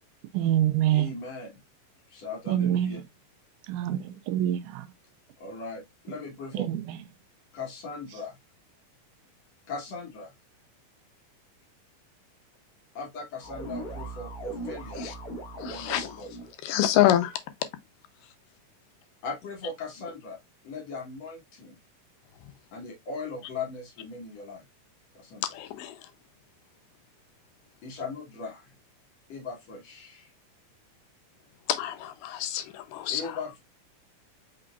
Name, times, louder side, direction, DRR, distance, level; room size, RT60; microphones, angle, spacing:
voice 1, 0.3-1.1 2.5-3.0 3.7-4.9 6.6-7.0, right 11 dB, 80° right, 2.0 m, -26 dB
voice 2, 0.9-1.6 2.1-3.0 5.4-6.7 7.5-8.4 9.7-10.3 12.9-15.1 15.5-16.5 19.2-20.4 20.6-21.8 22.7-24.6 25.1-25.5 27.8-28.7 29.3-30.3 33.1-33.6, left 3 dB, 60° left, 2.1 m, -39 dB
sound 1, 13.4-16.5, right 1 dB, 45° left, 1.3 m, -39 dB
voice 3, 15.6-16.1 16.6-17.3 25.5-25.9 31.7-32.7 33.1-33.2, left 12 dB, 85° left, 2.3 m, -25 dB
5.4 x 3.7 x 2.3 m
omnidirectional pair, 3.9 m